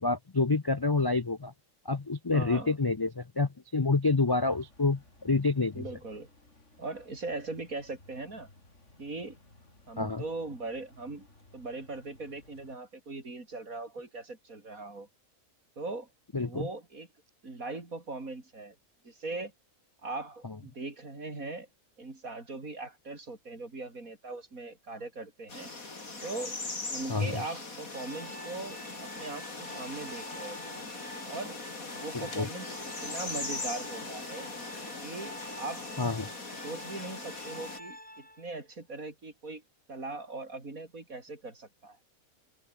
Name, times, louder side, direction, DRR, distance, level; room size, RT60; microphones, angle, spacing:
voice 1, 0.0-1.5 1.9-5.8 10.0-10.2 16.3-16.7 27.1-27.4 32.1-32.5 36.0-36.3, left 3 dB, 35° left, 0.3 m, -28 dB
voice 2, 2.3-2.7 5.7-6.3 6.8-8.5 9.0-9.4 9.9-11.3 11.5-15.1 15.8-16.1 16.4-17.1 17.4-18.8 19.0-19.5 20.0-21.7 22.0-25.7 26.2-26.6 26.9-30.7 31.3-31.6 31.9-34.5 35.0-35.9 36.6-39.6 39.9-42.0, right 3 dB, 80° right, 4.7 m, -40 dB
sound 1, 4.4-12.8, left 2 dB, 55° left, 5.5 m, -59 dB
sound 2, 25.5-37.8, left 3 dB, 80° left, 4.4 m, -40 dB
Organ, 27.9-38.6, left 1 dB, 5° left, 1.7 m, -47 dB
open air
omnidirectional pair, 1.5 m